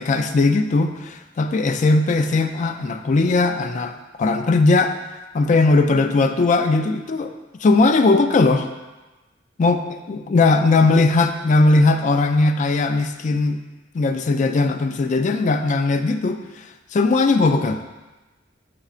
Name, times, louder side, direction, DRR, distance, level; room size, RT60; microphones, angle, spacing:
voice 1, 0.0-5.0 5.3-7.3 7.6-8.7 9.6-13.6 13.9-17.8, left 3 dB, 40° left, 7 dB, 0.3 m, -19 dB
6.7 x 6.1 x 2.4 m, 1.1 s
head